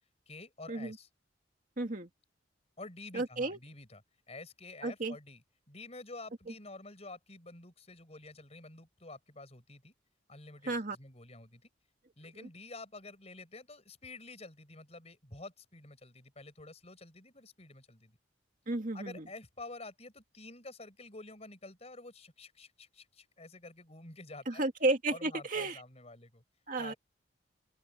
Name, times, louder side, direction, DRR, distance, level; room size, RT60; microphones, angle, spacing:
voice 1, 0.3-1.1 2.8-4.0 4.3-9.9 10.3-11.7 12.2-18.2 18.9-24.7 25.1-26.4 26.8-27.0, left 2 dB, 35° left, 5.1 m, -49 dB
voice 2, 1.8-2.1 3.1-3.6 4.8-5.2 10.7-11.0 12.4-12.5 18.7-19.2 24.5-25.8 26.7-26.9, right 2 dB, 45° right, 2.2 m, -33 dB
open air
head